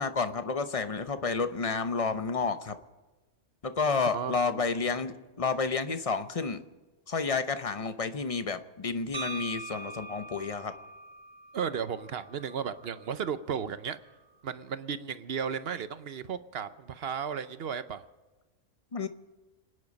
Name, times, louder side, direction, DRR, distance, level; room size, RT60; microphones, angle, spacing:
voice 1, 0.0-2.7 3.6-6.6 7.1-10.7 18.9-19.1, left 4 dB, 35° left, 10 dB, 0.7 m, -30 dB
voice 2, 4.1-4.6 11.5-14.0 14.4-18.0, right 7 dB, 55° right, 12 dB, 0.9 m, -34 dB
sound 1, 9.1-13.2, right 2 dB, 35° right, 1.5 m, -43 dB
27.5 x 9.8 x 5.3 m, 1.2 s
omnidirectional pair, 1.3 m